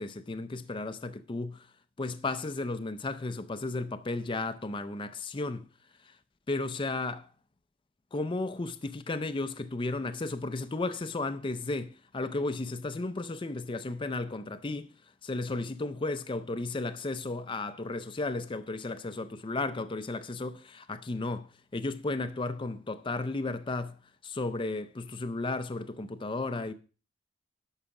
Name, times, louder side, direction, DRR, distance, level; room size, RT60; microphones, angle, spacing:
voice 1, 0.0-1.7 2.0-5.7 6.0-6.2 6.5-7.3 8.1-14.9 15.2-26.7, left 2 dB, 25° left, 0.5 m, -34 dB
11.0 x 4.8 x 7.0 m
head